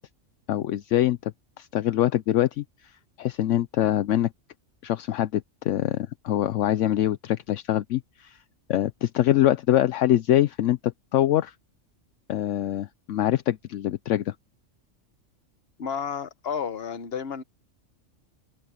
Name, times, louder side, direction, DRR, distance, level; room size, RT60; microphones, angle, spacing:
voice 1, 0.5-1.3 1.6-2.6 3.2-4.3 4.8-8.4 8.7-11.5 12.3-14.3, left 13 dB, 75° left, 0.9 m, -24 dB
voice 2, 15.8-17.4, left 7 dB, 50° left, 1.3 m, -31 dB
omnidirectional pair, 1.3 m